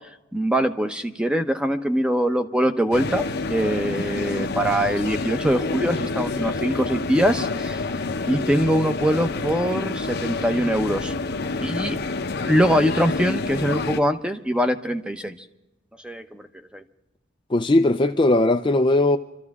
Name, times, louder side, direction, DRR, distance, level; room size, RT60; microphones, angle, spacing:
voice 1, 0.3-3.2 3.5-7.8 8.2-11.1 11.6-12.0 12.4-15.4 16.0-16.4 16.7-16.8, equal, 5° right, 0.8 m, -23 dB
sound 1, 2.9-14.0, left 3 dB, 55° left, 0.8 m, -28 dB
voice 2, 17.5-19.2, left 2 dB, 25° left, 0.5 m, -18 dB
26.5 x 13.5 x 3.6 m
head